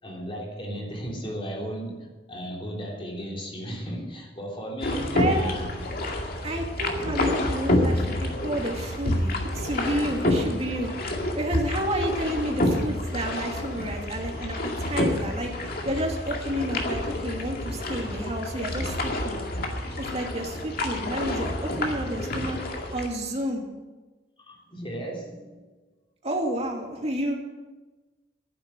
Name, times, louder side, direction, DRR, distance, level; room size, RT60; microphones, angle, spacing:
voice 1, 0.0-5.7 6.4-6.6 11.0-11.1 13.7-13.8 22.0-22.3 24.4-25.6, equal, 30° left, -1 dB, 3.3 m, -36 dB
sound 1, 4.8-23.1, left 1 dB, 55° left, 2.2 m, -28 dB
voice 2, 5.1-5.5 6.4-19.4 20.0-22.6 22.9-23.6 26.2-27.3, right 1 dB, 35° right, 1 dB, 2.6 m, -30 dB
11.5 x 10.5 x 7.8 m, 1.2 s
head